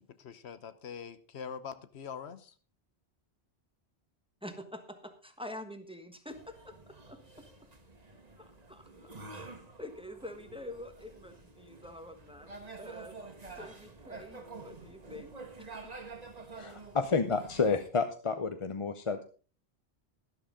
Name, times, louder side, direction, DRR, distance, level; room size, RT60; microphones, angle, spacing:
voice 1, 0.0-2.5, left 7 dB, 80° left, 1.1 m, -44 dB
voice 2, 4.4-7.5 8.4-12.5 12.8-13.3 13.5-15.3 15.6-15.7, left 1 dB, 5° right, 1.3 m, -47 dB
sound 1, 6.3-17.9, right 3 dB, 40° right, 1.5 m, -49 dB
voice 3, 16.6-19.2, left 4 dB, 35° left, 0.6 m, -30 dB
12.5 x 11.5 x 3.7 m
omnidirectional pair, 1.1 m